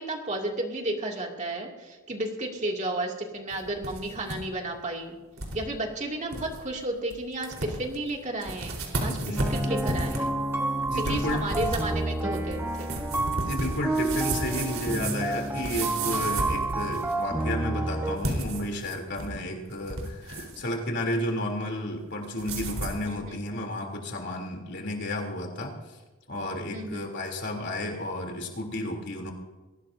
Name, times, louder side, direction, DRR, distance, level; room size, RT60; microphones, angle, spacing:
voice 1, 0.0-5.2 5.5-10.3 11.0-12.9 23.1-23.4 26.7-27.1, right 2 dB, 35° right, 0 dB, 2.7 m, -33 dB
sound 1, 3.5-4.4 4.7-4.8 5.4-5.6 6.0-6.1 6.3-6.6 7.1-7.2 7.4-8.0 8.4-17.2 18.1-19.4 19.7-20.7 22.4-23.0, right 2 dB, 70° right, 4.4 m, -33 dB
voice 2, 9.0-9.6 10.9-11.4 13.4-26.0 26.3-29.3, left 1 dB, 55° left, 1 dB, 3.5 m, -32 dB
sound 2, 9.4-18.2, right 2 dB, 10° right, 1.7 m, -30 dB
22.5 x 18.0 x 2.8 m, 1.2 s
head